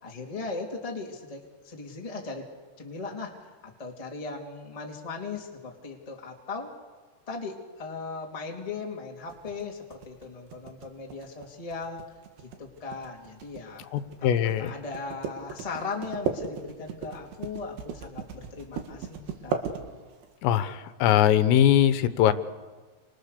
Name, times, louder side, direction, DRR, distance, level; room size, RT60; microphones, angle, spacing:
voice 1, 0.0-2.4 2.8-6.7 7.3-12.0 12.6-13.8 14.2-19.6, left 4 dB, 10° left, 0 dB, 1.8 m, -38 dB
sound 1, 9.3-20.3, right 6 dB, 60° right, 3.7 m, -36 dB
voice 2, 13.9-14.7 20.4-22.3, left 11 dB, 85° left, 11 dB, 3.7 m, -21 dB
28.5 x 26.5 x 6.8 m, 1.4 s
omnidirectional pair, 5.9 m